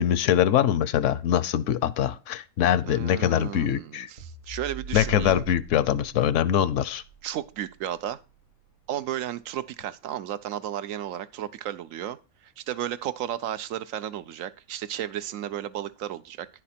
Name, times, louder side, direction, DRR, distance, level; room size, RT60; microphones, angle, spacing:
voice 1, 0.0-4.1 4.9-7.0, left 10 dB, 75° left, 0.9 m, -23 dB
voice 2, 2.8-5.4 7.2-8.2 8.9-12.2 12.4-16.5, right 11 dB, 85° right, 1.0 m, -33 dB
sound 1, 4.2-8.7, right 3 dB, 65° right, 2.0 m, -42 dB
10.0 x 6.6 x 4.2 m
omnidirectional pair, 1.4 m